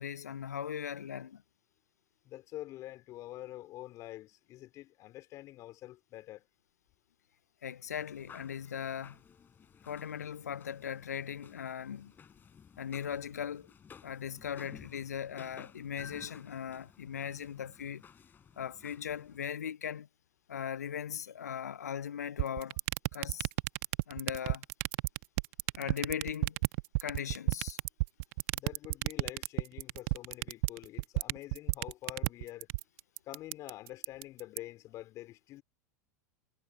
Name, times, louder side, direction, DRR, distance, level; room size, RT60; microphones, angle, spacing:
voice 1, 0.0-1.4 7.6-9.2 9.9-12.1 12.8-13.7 14.0-18.0 18.6-20.1 20.5-22.8 23.1-23.5 24.1-24.6 25.8-26.6 27.0-27.8, left 8 dB, 70° left, 1.0 m, -39 dB
voice 2, 2.2-6.5 28.5-32.7 33.3-35.6, left 15 dB, 40° left, 3.7 m, -46 dB
sound 1, 7.9-19.5, left 7 dB, 20° left, 5.0 m, -56 dB
sound 2, 22.4-34.6, right 24 dB, 50° right, 1.2 m, -31 dB
figure-of-eight pair, 90°, 9 cm